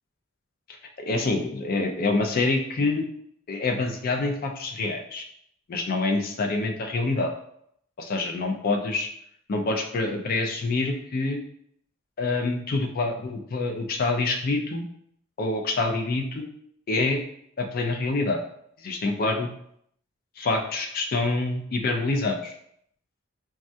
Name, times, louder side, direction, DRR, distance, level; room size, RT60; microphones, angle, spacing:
voice 1, 1.1-3.1 3.5-5.2 5.7-7.3 8.0-9.1 9.5-11.4 12.2-14.8 15.4-16.4 16.9-17.2 17.6-18.4 18.8-19.5 20.4-22.5, left 3 dB, 45° left, 4 dB, 0.4 m, -26 dB
3.4 x 2.2 x 2.6 m, 0.70 s
head